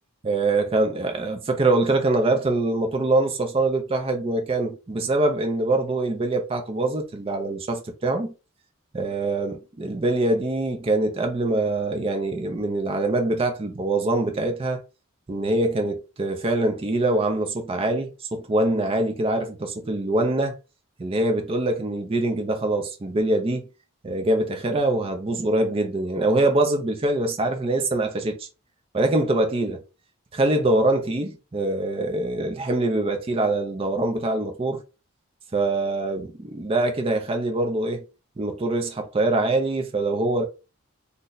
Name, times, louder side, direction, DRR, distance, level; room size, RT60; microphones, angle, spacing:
voice 1, 0.2-8.3 8.9-14.8 15.3-20.5 21.0-23.6 24.0-28.5 28.9-29.8 30.3-34.8 35.5-38.0 38.4-40.4, right 2 dB, 25° right, 0.4 m, -24 dB
2.6 x 2.1 x 3.8 m
head